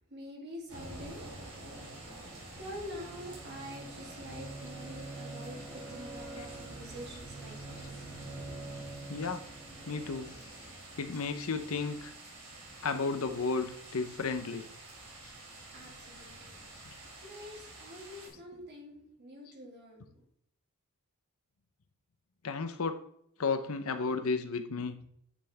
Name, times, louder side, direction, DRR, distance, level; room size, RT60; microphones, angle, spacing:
voice 1, 0.1-1.2 2.6-8.6 15.7-16.7 17.2-20.2, equal, 50° right, -2 dB, 2.7 m, -46 dB
sound 1, 0.7-18.3, right 2 dB, 80° right, 2.9 m, -48 dB
Bowed string instrument, 2.8-10.7, right 2 dB, ahead, 2.4 m, -47 dB
voice 2, 9.1-9.4 9.9-10.3 11.0-12.1 12.8-14.6 22.4-23.0 23.4-24.9, left 4 dB, 70° left, 9 dB, 0.7 m, -33 dB
9.7 x 5.7 x 3.3 m, 0.70 s
head